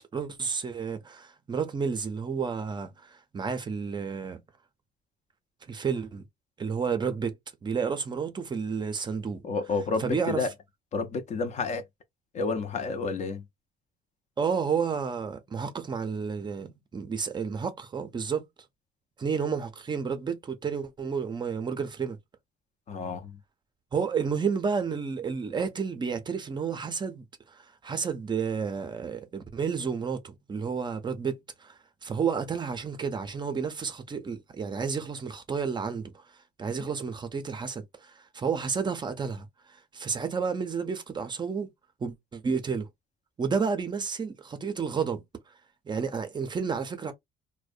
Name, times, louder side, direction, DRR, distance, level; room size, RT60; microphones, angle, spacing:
voice 1, 0.1-4.4 5.7-6.2 6.6-7.4 7.6-9.4 10.0-10.5 14.4-18.5 19.2-22.2 23.9-41.7 42.0-42.9 43.4-45.5 45.9-47.1, right 6 dB, 25° right, 0.4 m, -31 dB
voice 2, 9.4-10.5 10.9-11.8 12.3-13.4 22.9-23.4, left 4 dB, 45° left, 0.5 m, -30 dB
2.5 x 2.1 x 2.4 m
cardioid pair, 110°, 17 cm